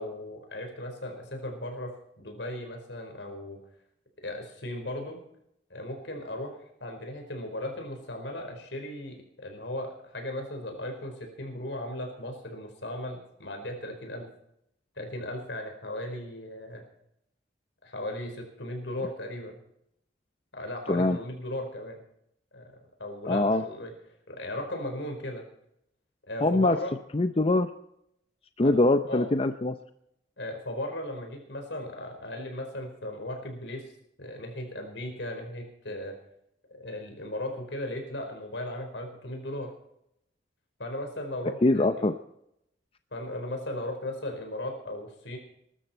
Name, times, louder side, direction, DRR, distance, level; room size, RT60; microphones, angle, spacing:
voice 1, 0.0-3.6 4.2-5.2 5.7-6.5 6.8-14.3 15.0-16.8 17.8-19.6 20.5-22.0 22.5-22.7 23.0-23.9 24.3-25.4 26.3-27.0 28.6-28.7 29.1-29.3 30.4-33.9 34.2-36.2 36.7-39.7 40.8-42.1 43.1-45.4, left 1 dB, 75° left, 3 dB, 4.7 m, -37 dB
voice 2, 23.3-23.6 26.4-26.8 27.1-27.7 28.6-29.8 41.6-42.1, left 2 dB, 30° left, 9 dB, 0.6 m, -23 dB
20.5 x 13.0 x 4.5 m, 0.77 s
head